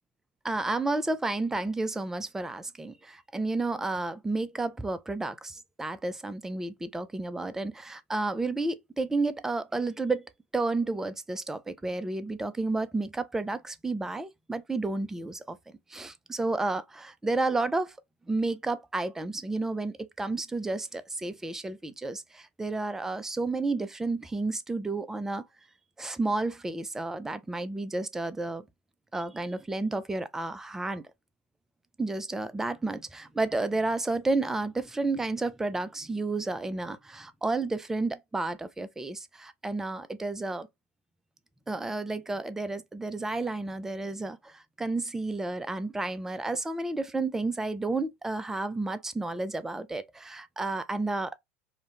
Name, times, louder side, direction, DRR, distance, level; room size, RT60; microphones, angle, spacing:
voice 1, 0.4-15.6 15.9-18.0 18.3-25.4 26.0-28.6 29.1-31.0 32.0-40.7 41.7-51.4, right 3 dB, 5° right, 0.3 m, -31 dB
2.4 x 2.0 x 2.9 m
figure-of-eight pair, 80°, 8 cm